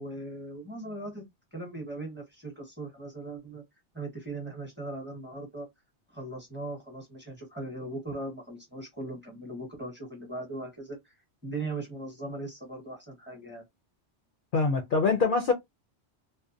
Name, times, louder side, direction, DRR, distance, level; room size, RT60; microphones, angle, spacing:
voice 1, 0.0-3.6 3.9-5.7 6.1-11.1 11.4-13.6, right 2 dB, 10° right, 0.9 m, -39 dB
voice 2, 14.5-15.5, left 4 dB, 60° left, 0.7 m, -24 dB
2.7 x 2.1 x 2.4 m
omnidirectional pair, 1.1 m